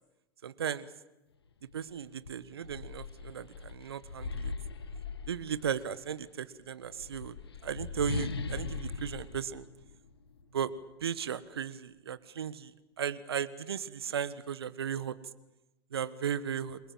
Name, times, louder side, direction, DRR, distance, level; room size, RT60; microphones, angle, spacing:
voice 1, 0.4-0.9 1.7-4.5 5.3-7.4 7.6-9.7 10.5-10.7 11.0-12.7 13.0-15.2 15.9-16.8, right 8 dB, 75° right, 15 dB, 1.5 m, -36 dB
sound 1, 1.7-1.8 2.2-5.9 6.8-10.4, left 4 dB, 75° left, 1.9 m, -39 dB
28.5 x 22.0 x 7.6 m, 0.96 s
figure-of-eight pair, 85°, 13 cm